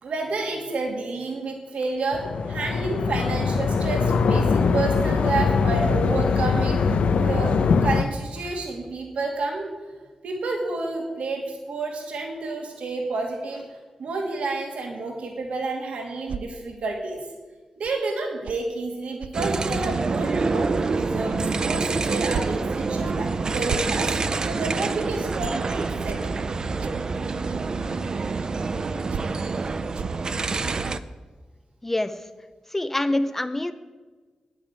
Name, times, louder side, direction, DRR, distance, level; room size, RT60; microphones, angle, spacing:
voice 1, 0.0-7.6 7.8-9.7 10.2-13.6 14.0-17.2 17.8-26.2, right 3 dB, 75° right, 1 dB, 2.3 m, -30 dB
sound 1, 2.1-8.0, left 5 dB, 70° left, 0.9 m, -22 dB
sound 2, 16.3-16.4 17.8-18.0 18.4-18.6 19.2-19.3 19.8-19.9 20.4-20.5 21.3-21.4 21.7-21.9 22.3-22.5 23.1-23.2 23.7-23.9 24.6-24.7 25.4-25.5 26.1-26.2 26.8-26.9 27.5-27.6 28.4-28.5 29.1-29.3 29.9-30.2, right 7 dB, 90° right, 0.4 m, -35 dB
sound 3, 19.3-31.0, right 4 dB, 35° right, 0.5 m, -27 dB
voice 2, 31.8-32.1 32.7-33.7, left 1 dB, 15° left, 10 dB, 0.6 m, -25 dB
10.5 x 9.5 x 8.8 m, 1.4 s
wide cardioid pair, 175°, 2 cm